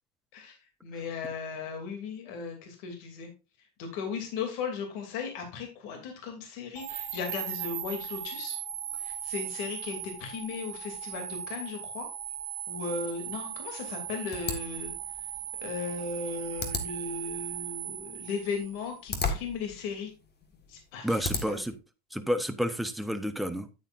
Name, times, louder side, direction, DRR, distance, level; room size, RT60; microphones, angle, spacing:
voice 1, 0.3-3.3 3.8-8.6 9.0-12.1 12.7-14.9 15.6-20.1 20.7-21.7, left 5 dB, 65° left, 4 dB, 2.7 m, -37 dB
sound 1, 6.7-18.9, right 10 dB, 45° right, 3.8 m, -38 dB
sound 2, 14.3-21.8, left 4 dB, 25° left, 1.6 m, -38 dB
voice 2, 21.0-21.7 22.1-23.7, equal, ahead, 7 dB, 0.8 m, -30 dB
9.4 x 8.9 x 2.5 m, 0.28 s
supercardioid pair, 120°, 37 cm